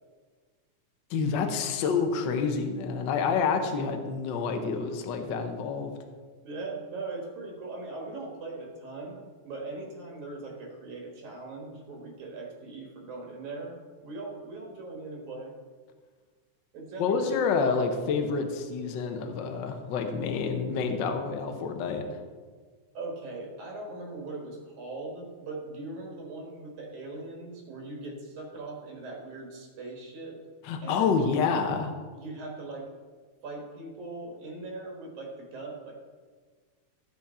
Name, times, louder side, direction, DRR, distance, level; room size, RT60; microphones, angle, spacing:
voice 1, 1.1-5.9 17.0-22.0 30.6-31.9, left 5 dB, 85° left, 5 dB, 1.0 m, -28 dB
voice 2, 6.4-13.8 14.0-15.6 16.7-17.6 22.9-30.4 30.8-31.2 32.1-32.9 33.4-36.0, right 3 dB, 75° right, 0 dB, 2.8 m, -40 dB
14.0 x 6.3 x 4.3 m, 1.5 s
omnidirectional pair, 3.5 m